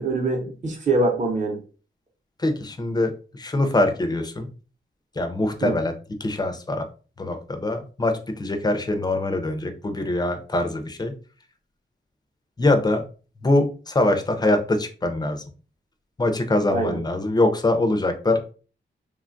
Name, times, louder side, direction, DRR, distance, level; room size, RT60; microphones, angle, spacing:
voice 1, 0.0-1.6 5.6-5.7 16.7-17.0, right 2 dB, 40° right, 1 dB, 0.6 m, -24 dB
voice 2, 2.4-4.5 5.2-6.9 7.2-11.1 12.6-13.0 13.4-15.4 16.2-18.5, left 2 dB, 20° left, 6 dB, 0.4 m, -23 dB
3.1 x 2.2 x 2.5 m, 0.37 s
wide cardioid pair, 140°, 20 cm